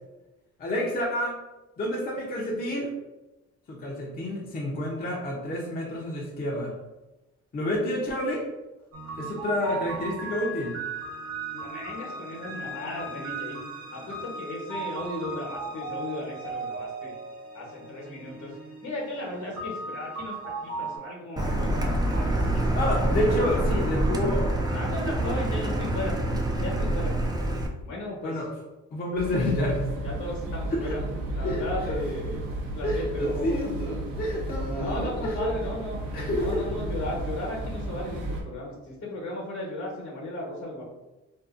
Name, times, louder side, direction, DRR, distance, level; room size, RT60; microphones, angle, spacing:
voice 1, 0.6-1.4 1.8-2.9 3.7-6.7 7.5-8.5 9.2-10.8 22.7-24.4 25.0-25.3 28.2-28.5 28.9-29.9 30.8-31.0 31.4-31.6 31.9-32.0 32.8-35.4 36.1-36.8, left 1 dB, 30° left, -3 dB, 0.6 m, -29 dB
sound 1, 8.9-21.0, right 3 dB, 55° right, 0.9 m, -37 dB
voice 2, 11.5-13.6 13.9-17.1 17.5-18.5 18.8-22.9 23.9-24.0 24.7-26.2 26.6-27.2 27.8-28.4 29.3-29.5 30.0-31.0 31.3-33.7 34.7-36.0 36.3-40.8, left 1 dB, 70° left, -3 dB, 1.0 m, -36 dB
Car, 21.4-27.7, right 1 dB, 15° right, 0.3 m, -26 dB
sound 2, 29.2-38.4, right 1 dB, 85° right, 0.6 m, -33 dB
2.6 x 2.5 x 2.4 m, 1.0 s
cardioid pair, 90°, 30 cm